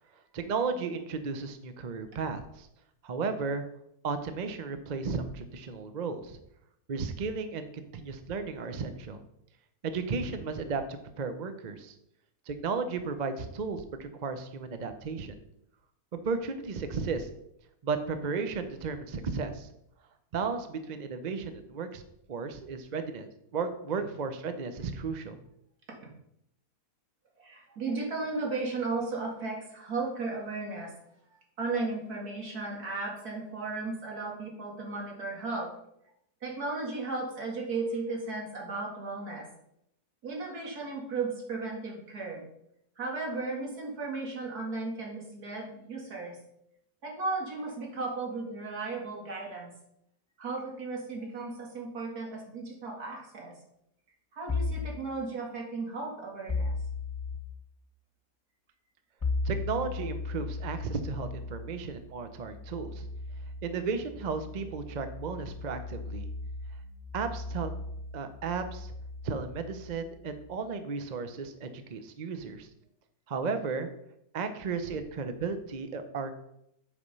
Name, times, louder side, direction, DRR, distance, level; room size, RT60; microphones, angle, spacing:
voice 1, 0.3-2.7 3.0-3.6 4.0-6.4 6.9-9.2 9.8-11.9 12.5-15.4 16.1-17.3 17.8-19.7 20.3-22.0 22.3-25.4 59.4-63.1 63.6-66.3 67.1-67.7 68.1-68.9 69.2-72.7 73.3-73.9 74.3-76.3, right 5 dB, 45° right, 9 dB, 0.6 m, -34 dB
voice 2, 27.4-30.9 31.6-35.7 36.4-39.5 40.2-42.4 43.0-46.4 47.0-49.7 50.4-53.5 54.3-56.7, right 3 dB, 75° right, -1 dB, 2.5 m, -35 dB
sound 1, 54.5-54.9 56.5-57.4 59.2-70.6, left 3 dB, 20° left, 0.6 m, -37 dB
8.4 x 5.2 x 5.4 m, 0.78 s
omnidirectional pair, 1.6 m